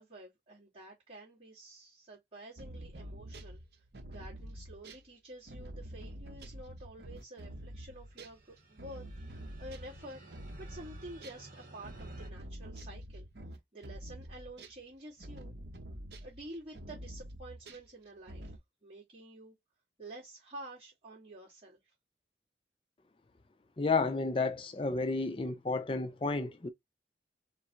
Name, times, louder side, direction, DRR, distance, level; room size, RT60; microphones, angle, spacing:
voice 1, 0.0-3.6 4.1-9.0 9.3-10.2 10.6-13.3 13.7-15.5 16.2-18.6 18.8-19.5 20.0-21.8, right 1 dB, 30° right, 2.5 m, -49 dB
sound 1, 2.6-11.4 11.8-18.6, right 1 dB, 70° right, 0.8 m, -47 dB
sound 2, 7.8-12.3, right 2 dB, 50° right, 2.0 m, -55 dB
voice 2, 23.8-26.7, left 3 dB, 30° left, 0.5 m, -31 dB
3.7 x 2.6 x 4.3 m
head